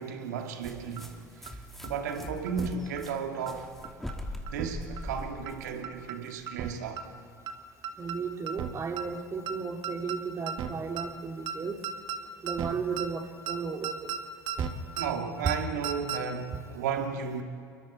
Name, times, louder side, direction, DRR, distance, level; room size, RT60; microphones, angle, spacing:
voice 1, 0.0-3.7 4.5-7.0 15.0-17.4, right 6 dB, 75° right, 2.1 m, -34 dB
sound 1, 0.6-6.3, equal, 5° left, 2.8 m, -42 dB
sound 2, 0.6-0.7 1.0-1.1 1.5-1.6 1.8-2.1 2.5-2.7 3.0-3.1 3.5-3.6 3.8-4.1 4.5-4.7 5.0-5.1 5.5-5.6 5.8-6.2 6.5-6.7 7.0-7.1 7.5-7.6 7.8-8.2 8.5-8.7 9.0-9.1 9.5-9.6 9.8-10.2 10.5-10.7 11.0-11.1 11.5-11.6 11.8-12.2 12.5-12.7 13.0-13.1 13.5-13.6 13.8-14.2 14.5-14.7 15.0-15.1 15.5-15.6 15.8-16.2, right 8 dB, 50° right, 1.7 m, -34 dB
voice 2, 8.0-11.8 12.4-14.1, right 5 dB, 30° right, 2.5 m, -34 dB
28.5 x 23.5 x 4.3 m
hypercardioid pair, 70°, 9 cm